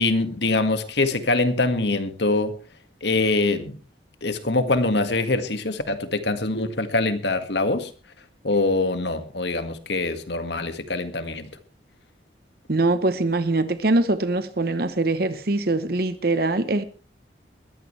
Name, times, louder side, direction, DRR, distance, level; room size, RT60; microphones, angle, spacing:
voice 1, 0.0-2.6 3.0-3.8 4.2-7.9 8.4-11.5, left 2 dB, 70° left, 1.9 m, -24 dB
voice 2, 12.7-16.8, right 2 dB, 55° right, 0.9 m, -23 dB
21.0 x 15.0 x 3.3 m
head